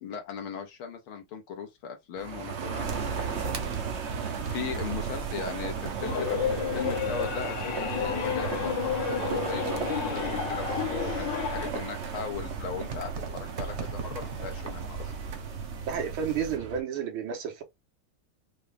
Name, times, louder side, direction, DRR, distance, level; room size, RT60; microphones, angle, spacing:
voice 1, 0.0-3.8 4.4-9.6 10.0-15.1, left 6 dB, 80° left, 2.0 m, -38 dB
sound 1, 2.2-16.8, right 6 dB, 60° right, 0.7 m, -35 dB
sound 2, 2.8-16.6, right 4 dB, 45° right, 1.0 m, -41 dB
sound 3, 6.0-11.7, left 7 dB, 65° left, 1.5 m, -31 dB
voice 2, 15.9-17.6, right 7 dB, 85° right, 2.0 m, -31 dB
5.5 x 2.3 x 3.4 m
omnidirectional pair, 2.3 m